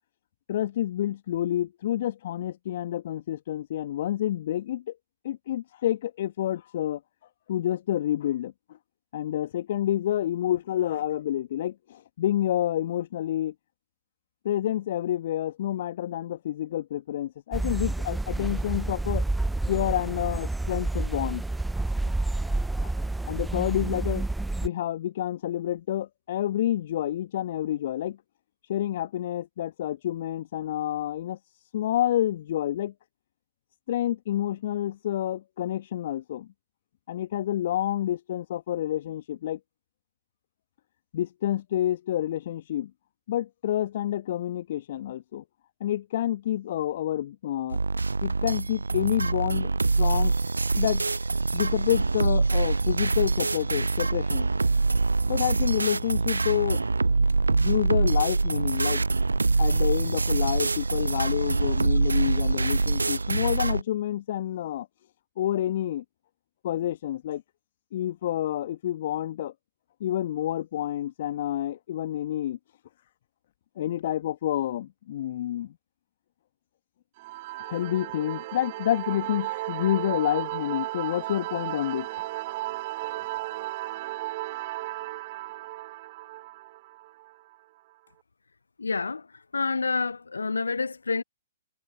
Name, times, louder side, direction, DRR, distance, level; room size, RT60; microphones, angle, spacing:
voice 1, 0.5-4.8 5.2-7.0 7.5-8.5 9.1-13.5 14.4-19.2 19.7-21.4 22.5-22.9 23.3-24.3 24.6-28.2 28.7-31.4 31.7-32.9 33.9-36.5 37.1-39.6 41.1-42.9 43.3-45.4 45.8-47.8 48.2-49.7 50.0-50.3 50.8-51.0 51.5-54.5 55.3-56.8 57.5-59.0 59.6-64.9 65.4-66.0 66.6-67.4 67.9-69.5 70.0-72.6 73.8-75.7 77.6-82.1, left 12 dB, 50° left, 2.0 m, -28 dB
sound 1, 17.5-24.7, right 2 dB, 5° right, 1.1 m, -29 dB
sound 2, 47.7-63.8, right 3 dB, 80° right, 0.3 m, -25 dB
sound 3, 77.2-87.5, right 19 dB, 40° right, 3.6 m, -35 dB
voice 2, 88.8-89.3 89.5-91.2, left 4 dB, 75° left, 1.2 m, -28 dB
figure-of-eight pair, 115°, 0 cm